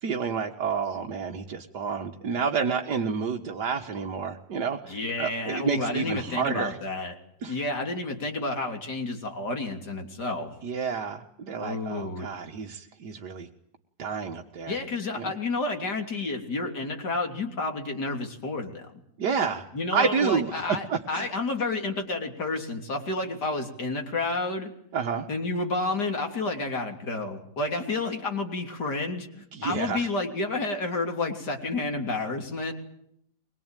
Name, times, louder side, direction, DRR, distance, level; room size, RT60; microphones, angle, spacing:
voice 1, 0.0-6.8 7.4-7.6 10.6-13.5 14.0-14.8 15.1-15.3 19.2-19.7 19.9-21.3 24.9-25.3 29.5-30.1, right 6 dB, 90° right, 3 dB, 2.1 m, -29 dB
voice 2, 4.9-7.1 7.5-10.5 11.6-12.3 14.7-18.8 19.7-24.7 25.3-29.3 29.6-32.7, left 3 dB, 85° left, 3 dB, 3.9 m, -30 dB
24.0 x 21.5 x 9.1 m, 0.70 s
omnidirectional pair, 1.7 m